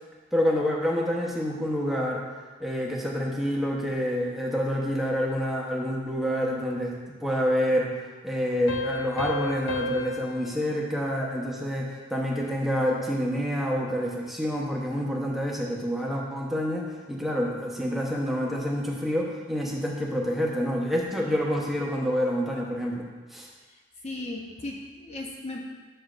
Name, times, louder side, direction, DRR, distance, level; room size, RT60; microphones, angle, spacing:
voice 1, 0.3-2.2 2.6-7.9 8.2-23.5, equal, ahead, -3 dB, 0.9 m, -28 dB
Piano, 8.7-12.0, left 3 dB, 75° left, 0.8 m, -34 dB
voice 2, 23.7-25.6, left 2 dB, 35° left, -1 dB, 0.7 m, -37 dB
10.0 x 7.1 x 2.5 m, 1.4 s
head